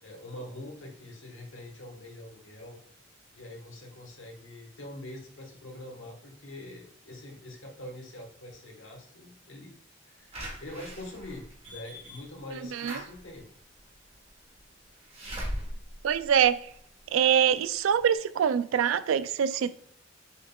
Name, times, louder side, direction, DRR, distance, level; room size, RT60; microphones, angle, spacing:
voice 1, 0.0-2.8 3.3-9.7 10.1-13.5, left 1 dB, 70° left, 1.4 m, -44 dB
Slam / Alarm, 10.3-17.1 17.6-17.7 18.0-18.1, equal, 30° right, 1.2 m, -41 dB
voice 2, 16.0-16.6 17.1-19.7, right 8 dB, 75° right, 0.3 m, -24 dB
6.2 x 3.6 x 2.3 m
head